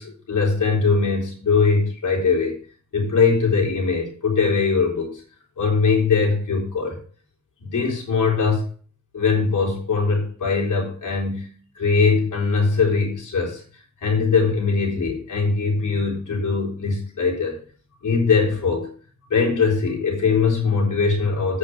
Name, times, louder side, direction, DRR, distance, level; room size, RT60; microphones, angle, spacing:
voice 1, 0.0-2.6 2.9-5.2 5.6-7.0 7.6-8.7 9.1-13.6 14.0-17.6 18.0-18.9 19.3-21.6, left 4 dB, 85° left, -2 dB, 4.0 m, -21 dB
8.8 x 6.3 x 6.2 m, 0.43 s
cardioid pair, 80°, 30 cm